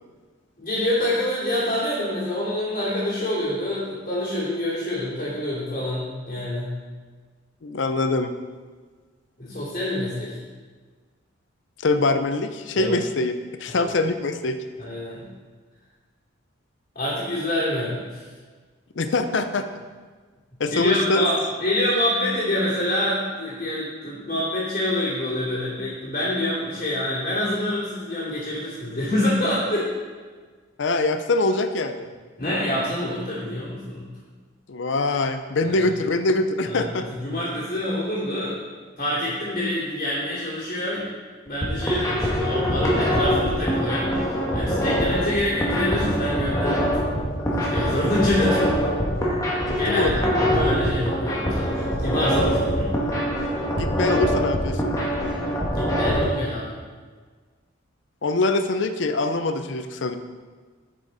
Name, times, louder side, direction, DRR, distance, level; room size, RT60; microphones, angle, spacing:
voice 1, 0.6-6.7 9.4-10.3 12.7-13.0 13.7-13.9 14.8-15.3 16.9-18.2 20.7-29.9 32.4-34.1 35.6-35.7 36.6-38.5 39.0-41.1 41.5-44.2 44.5-47.0 47.5-48.7 49.8-50.3 50.5-52.9 55.7-56.8, left 1 dB, 45° left, -9 dB, 2.6 m, -26 dB
voice 2, 7.6-8.3 11.8-13.3 13.6-14.6 19.0-19.8 20.6-21.3 30.8-32.1 34.7-37.1 49.7-50.3 53.7-55.0 58.2-60.2, left 2 dB, 65° left, 9 dB, 0.5 m, -23 dB
sound 1, 41.5-56.2, equal, 15° left, 1.3 m, -24 dB
8.2 x 6.3 x 4.0 m, 1.4 s
head